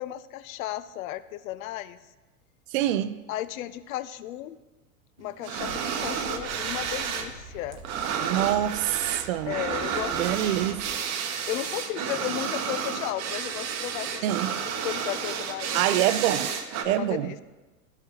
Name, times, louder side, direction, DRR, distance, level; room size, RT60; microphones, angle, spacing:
voice 1, 0.0-2.0 3.3-4.6 5.2-7.8 9.5-10.6 11.5-14.3 14.8-16.1 16.9-17.4, left 14 dB, 70° left, 0.5 m, -34 dB
voice 2, 2.7-3.1 8.2-9.6 10.2-10.8 14.2-14.5 15.7-16.5 16.8-17.3, right 13 dB, 65° right, 0.5 m, -25 dB
sound 1, 5.4-7.3 7.6-16.9, right 7 dB, 35° right, 0.8 m, -31 dB
sound 2, 5.5-10.9, right 2 dB, 85° left, 2.5 m, -46 dB
11.5 x 5.8 x 2.9 m
hypercardioid pair, 95°, 44 cm